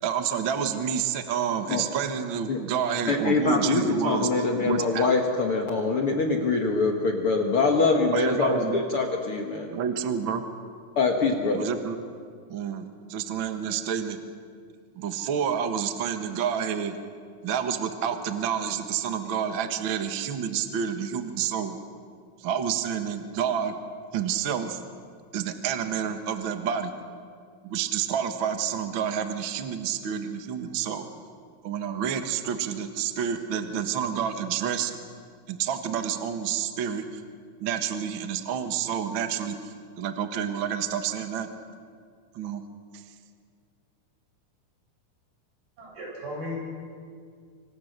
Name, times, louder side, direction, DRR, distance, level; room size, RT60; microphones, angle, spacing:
voice 1, 0.0-4.3 4.6-5.1 8.1-8.8 9.7-10.4 11.5-12.0 12.5-14.2 15.0-16.9 17.4-21.8 22.4-23.7 24.1-24.8 25.3-26.9 27.6-31.1 31.6-34.9 35.5-37.0 37.6-39.5 40.0-41.5 42.3-42.6, right 8 dB, 60° right, 7 dB, 1.3 m, -29 dB
voice 2, 3.1-9.7 11.0-11.7, left 3 dB, 50° left, 2 dB, 1.8 m, -24 dB
voice 3, 45.8-46.6, left 1 dB, 80° right, -3 dB, 9.4 m, -35 dB
26.5 x 25.0 x 6.7 m, 2.1 s
omnidirectional pair, 4.3 m